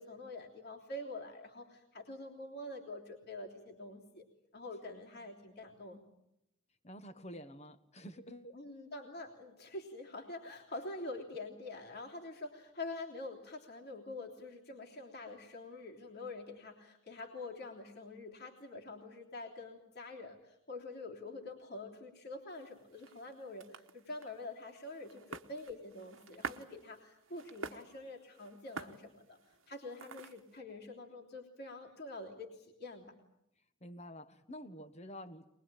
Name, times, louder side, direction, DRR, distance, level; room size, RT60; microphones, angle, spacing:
voice 1, 0.0-4.3 4.5-6.0 8.5-33.1, left 2 dB, 50° left, 0 dB, 3.3 m, -46 dB
voice 2, 6.8-8.5 33.8-35.4, equal, 30° left, 11 dB, 1.3 m, -49 dB
sound 1, 22.5-30.6, right 4 dB, 65° right, 1.2 m, -49 dB
23.5 x 21.5 x 8.9 m, 0.81 s
head